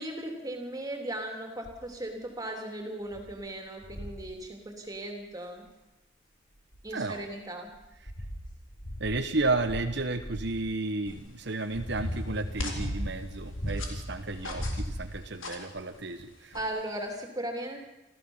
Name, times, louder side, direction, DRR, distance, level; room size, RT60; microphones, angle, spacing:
voice 1, 0.0-5.6 6.8-7.7 16.5-17.8, right 1 dB, 15° right, 3 dB, 3.2 m, -37 dB
sound 1, 1.6-1.9 2.5-2.6 3.1-3.3 3.8-4.3 5.7-5.8 6.5-7.2 7.7-10.6 11.3-14.1 14.4-15.4 16.2-16.3, equal, 45° left, 6.4 m, -37 dB
voice 2, 6.9-7.3 8.0-8.1 9.0-16.6, right 2 dB, 55° right, 6 dB, 1.2 m, -32 dB
sound 2, 11.0-17.2, left 2 dB, 70° left, 3.8 m, -43 dB
28.0 x 14.5 x 7.3 m, 1.0 s
head